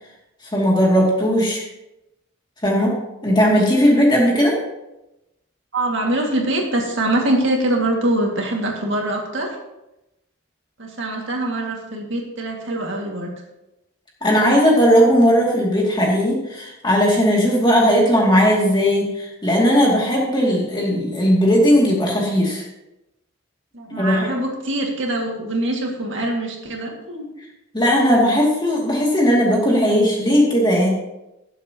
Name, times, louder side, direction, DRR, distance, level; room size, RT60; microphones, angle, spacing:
voice 1, 0.5-1.6 2.6-2.9 3.2-4.6 14.2-22.6 24.0-24.3 27.7-30.9, equal, 20° left, -3 dB, 2.5 m, -17 dB
voice 2, 5.7-9.6 10.8-13.3 23.7-27.3, right 1 dB, 60° right, 0 dB, 2.1 m, -23 dB
18.5 x 7.6 x 3.0 m, 0.94 s
head